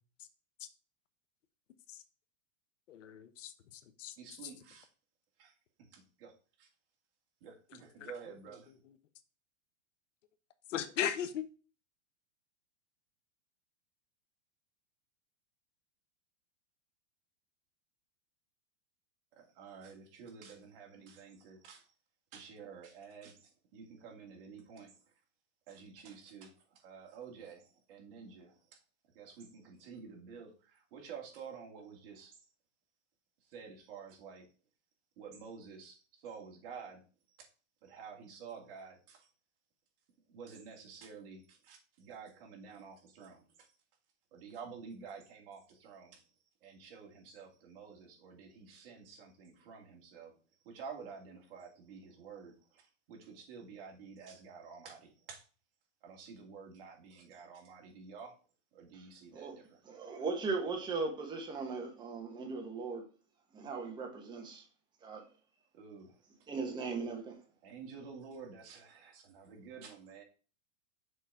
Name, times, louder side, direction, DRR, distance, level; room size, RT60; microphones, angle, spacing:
voice 1, 2.9-4.1 8.0-8.1 10.7-11.5, left 9 dB, 85° left, 1.0 m, -37 dB
voice 2, 4.2-4.9 5.4-5.5 5.9-6.3 6.6-6.7 7.4-8.7 19.4-21.9 22.3-24.9 25.7-26.5 26.8-28.6 29.1-32.3 33.4-34.5 35.2-37.0 37.8-39.3 40.3-43.7 44.3-46.2 46.6-50.3 50.6-55.4 56.0-58.4 58.7-59.8 65.7-66.3 67.6-70.2, right 6 dB, 50° right, 2.3 m, -50 dB
voice 3, 59.8-63.0 63.5-64.6 65.0-65.2 66.5-67.4, right 4 dB, 10° right, 1.2 m, -38 dB
6.6 x 4.0 x 4.8 m
supercardioid pair, 165°, 37 cm